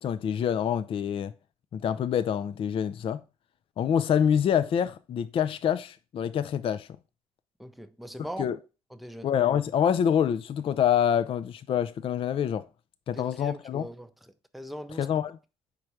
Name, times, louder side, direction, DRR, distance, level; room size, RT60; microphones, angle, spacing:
voice 1, 0.0-1.3 1.7-3.2 3.8-6.9 8.4-8.6 9.2-12.7 13.1-13.9 15.0-15.4, left 8 dB, 40° left, 0.4 m, -26 dB
voice 2, 7.6-8.5 8.9-9.3 13.1-14.1 14.5-15.1, equal, ahead, 0.6 m, -40 dB
5.2 x 4.3 x 4.6 m
hypercardioid pair, 50°, 14 cm